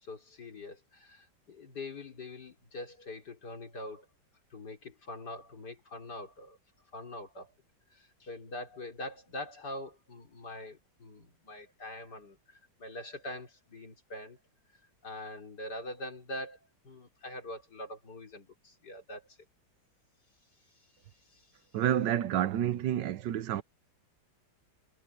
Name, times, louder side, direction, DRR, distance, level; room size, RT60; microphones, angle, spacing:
voice 1, 0.0-4.1 4.5-6.6 6.9-7.5 7.9-14.4 15.0-16.6 16.8-19.4 20.7-21.6, left 1 dB, 60° left, 4.4 m, -44 dB
voice 2, 21.7-23.6, right 11 dB, 75° right, 1.4 m, -29 dB
omnidirectional pair, 2.0 m